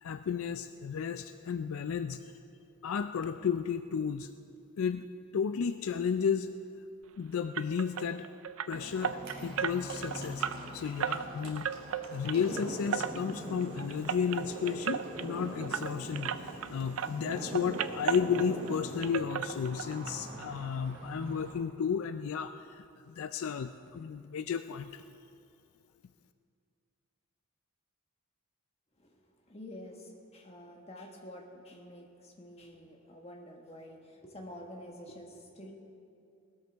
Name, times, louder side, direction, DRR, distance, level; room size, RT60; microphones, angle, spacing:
voice 1, 0.0-2.2 2.8-4.3 4.8-5.0 5.3-6.5 7.2-8.3 8.7-10.5 10.7-11.7 12.1-25.0, left 7 dB, 70° left, 9 dB, 0.4 m, -33 dB
sound 1, 7.5-16.7 17.0-18.8 19.0-20.1 20.4-20.5 20.9-21.0 21.4-21.5, right 8 dB, 65° right, 0.4 m, -36 dB
Livestock farm animals working animals, 8.7-21.5, right 1 dB, 50° right, 3.8 m, -47 dB
sound 2, 12.3-19.1, right 1 dB, 35° right, 3.2 m, -42 dB
voice 2, 29.5-35.7, left 1 dB, 25° left, 0 dB, 1.5 m, -48 dB
19.5 x 13.0 x 3.5 m, 2.5 s
head